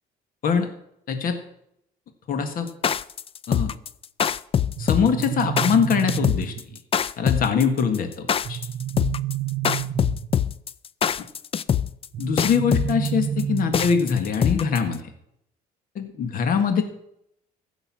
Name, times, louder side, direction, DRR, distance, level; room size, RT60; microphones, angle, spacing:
voice 1, 2.3-2.7 3.5-3.7 4.8-6.5 7.2-8.6 12.2-15.0 15.9-16.8, left 6 dB, 55° left, 7 dB, 1.7 m, -23 dB
sound 1, 2.7-14.9, left 8 dB, 35° left, 0.4 m, -23 dB
sound 2, 4.8-6.8 8.4-10.5 12.1-14.1, right 10 dB, 60° right, 0.6 m, -29 dB
15.0 x 6.6 x 7.4 m, 0.75 s
cardioid pair, 110°, 17 cm